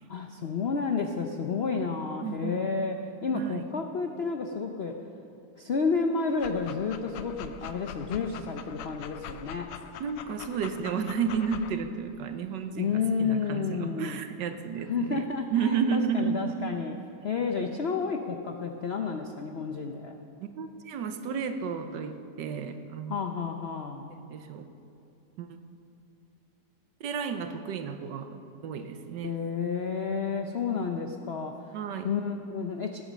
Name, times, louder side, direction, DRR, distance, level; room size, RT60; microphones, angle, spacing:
voice 1, 0.1-3.0 3.2-4.9 5.6-9.7 12.7-14.2 14.9-16.9 17.2-20.2 23.1-24.1 29.2-31.8 32.0-33.0, left 5 dB, 65° left, 4 dB, 0.6 m, -31 dB
voice 2, 2.2-2.6 3.3-3.7 10.0-16.3 20.6-23.2 24.1-24.7 25.4-25.5 27.0-29.4 31.7-32.1, right 6 dB, 75° right, 8 dB, 1.5 m, -32 dB
Dog, 6.3-11.7, left 9 dB, 85° left, 1.4 m, -43 dB
17.0 x 9.2 x 6.2 m, 2.7 s
omnidirectional pair, 2.0 m